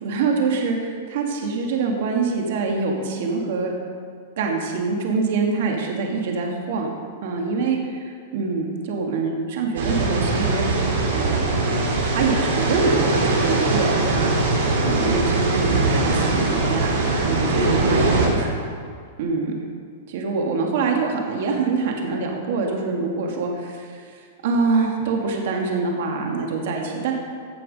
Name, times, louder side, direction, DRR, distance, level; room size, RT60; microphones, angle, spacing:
voice 1, 0.0-3.7 4.4-6.9 7.2-10.6 11.1-11.4 12.1-14.4 14.8-18.6 19.2-19.5 20.1-24.0 24.4-27.1, right 4 dB, 60° right, 1 dB, 1.9 m, -25 dB
sound 1, 9.8-18.3, right 2 dB, 80° right, 3.1 m, -21 dB
15.5 x 6.0 x 5.3 m, 2.1 s
supercardioid pair, 150°, 0 cm